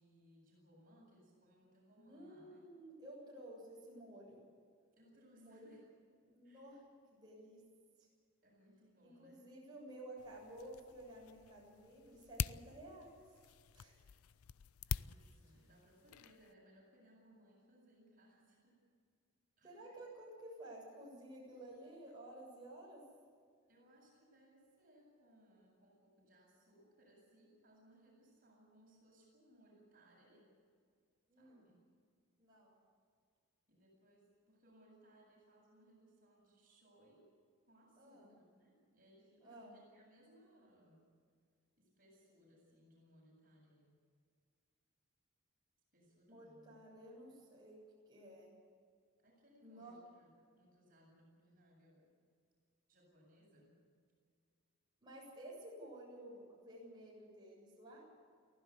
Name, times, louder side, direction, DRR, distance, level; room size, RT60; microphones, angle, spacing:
voice 1, 0.0-2.6 5.0-6.0 6.4-6.8 8.4-9.6 14.8-18.9 19.6-20.0 23.7-30.5 31.4-31.9 33.7-37.3 37.7-41.1 41.8-43.9 45.9-46.9 49.2-52.1 52.9-53.8, equal, 40° right, -2 dB, 7.7 m, -67 dB
voice 2, 2.1-4.4 5.3-5.7 6.2-6.8 7.1-7.6 9.0-13.1 13.7-14.0 19.6-23.0 31.3-31.6 32.4-32.8 38.0-38.3 39.4-39.7 46.3-47.8 48.1-48.5 49.6-50.0 55.0-58.0, right 1 dB, 20° right, -5 dB, 7.6 m, -53 dB
sound 1, 10.2-16.5, left 7 dB, 90° left, 0.5 m, -46 dB
24.0 x 15.5 x 8.5 m, 2.1 s
head